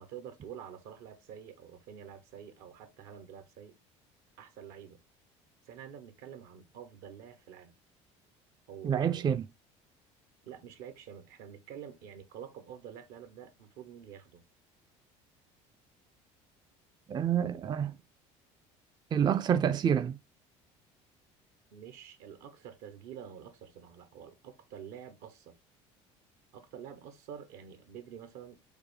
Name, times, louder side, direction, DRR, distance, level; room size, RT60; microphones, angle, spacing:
voice 1, 0.0-3.8 4.4-5.0 5.6-7.7 8.7-9.2 10.4-14.4 21.7-25.5 26.5-28.6, right 8 dB, 75° right, 1.0 m, -48 dB
voice 2, 8.8-9.5 17.1-18.0 19.1-20.2, right 8 dB, 30° right, 0.4 m, -28 dB
5.0 x 2.1 x 4.8 m
supercardioid pair, 85°, 15 cm